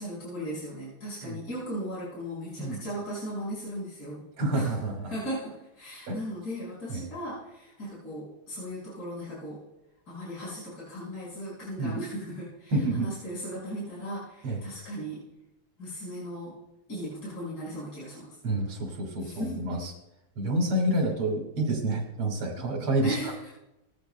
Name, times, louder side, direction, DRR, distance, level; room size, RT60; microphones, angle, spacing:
voice 1, 0.0-4.2 4.5-4.8 5.1-9.6 10.1-15.2 15.8-16.6 16.9-18.4 19.2-19.6 23.0-23.5, equal, 45° left, -8 dB, 5.9 m, -37 dB
voice 2, 4.4-5.1 6.1-6.2 6.9-7.0 11.8-12.0 12.7-13.1 14.4-14.6 18.4-19.9 20.4-23.2, right 1 dB, 85° right, 1 dB, 2.8 m, -28 dB
20.0 x 16.0 x 2.2 m, 0.95 s
omnidirectional pair, 2.3 m